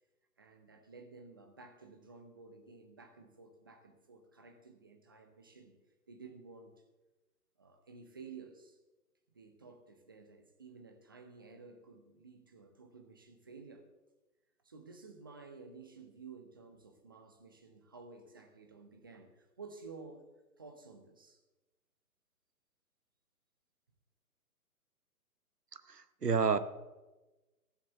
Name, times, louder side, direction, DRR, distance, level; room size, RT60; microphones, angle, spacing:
voice 1, 0.4-5.8 6.1-6.7 7.6-8.8 9.3-13.9 14.6-20.3 20.6-21.4, right 4 dB, 15° right, 6 dB, 0.6 m, -53 dB
voice 2, 25.9-26.6, right 5 dB, 85° right, 13 dB, 1.1 m, -29 dB
14.5 x 7.3 x 6.7 m, 1.1 s
figure-of-eight pair, 135°, 46 cm